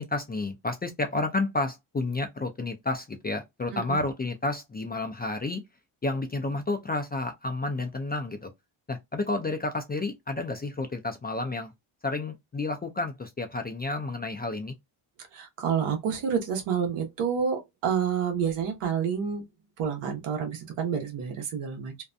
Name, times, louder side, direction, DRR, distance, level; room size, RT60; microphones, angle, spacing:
voice 1, 0.0-5.6 6.0-8.5 8.9-11.7 12.0-14.7, left 2 dB, 20° left, 0.4 m, -31 dB
voice 2, 15.3-19.4 19.8-22.0, right 7 dB, 85° right, 1.0 m, -29 dB
2.6 x 2.2 x 2.5 m
cardioid pair, 90°, 50 cm